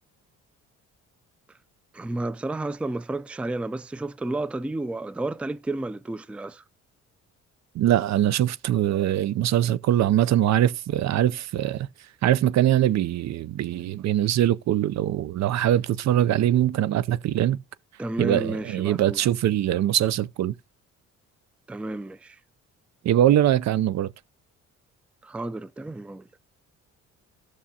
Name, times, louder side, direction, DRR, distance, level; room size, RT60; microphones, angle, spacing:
voice 1, 1.9-6.6 18.0-19.2 21.7-22.4 25.2-26.3, right 2 dB, 5° right, 0.4 m, -31 dB
voice 2, 7.7-11.9 12.2-17.6 18.2-20.5 23.0-24.1, right 12 dB, 65° right, 0.5 m, -22 dB
14.0 x 6.3 x 2.8 m
cardioid pair, 90°, 30 cm